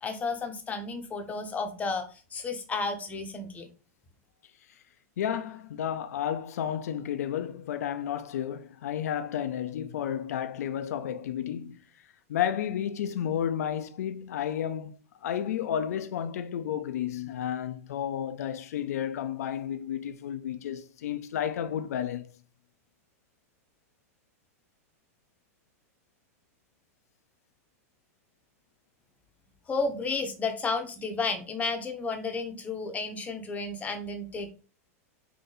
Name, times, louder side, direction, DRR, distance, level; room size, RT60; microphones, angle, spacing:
voice 1, 0.0-3.7 29.7-34.5, left 3 dB, 20° left, 0.8 m, -32 dB
voice 2, 5.2-11.8 12.3-22.3, left 9 dB, 80° left, 0.5 m, -32 dB
3.9 x 2.7 x 3.9 m
hypercardioid pair, 130°, 8 cm